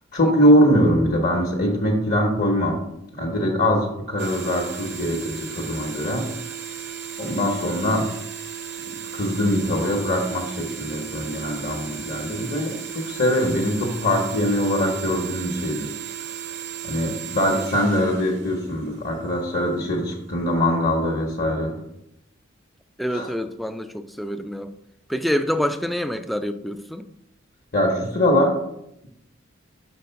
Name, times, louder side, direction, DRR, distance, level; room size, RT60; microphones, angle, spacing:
voice 1, 0.1-2.8 3.2-6.3 7.2-8.1 9.1-15.9 16.8-21.7 23.1-23.3 27.7-28.5, equal, 50° left, 0 dB, 1.0 m, -22 dB
sound 1, 4.2-19.4, right 8 dB, 60° right, 0.7 m, -35 dB
voice 2, 23.0-24.7 25.1-27.1, equal, ahead, 9 dB, 0.3 m, -27 dB
6.3 x 3.8 x 5.7 m, 0.81 s
head